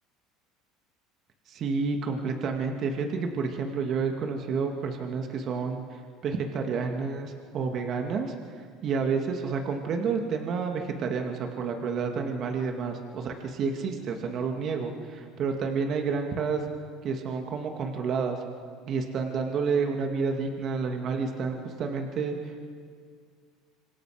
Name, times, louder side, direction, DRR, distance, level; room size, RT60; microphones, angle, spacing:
voice 1, 1.5-8.3 8.8-16.6 17.0-18.4 18.9-22.7, right 5 dB, 50° right, 3 dB, 2.3 m, -30 dB
26.0 x 26.0 x 5.1 m, 2.1 s
hypercardioid pair, 85°, 0 cm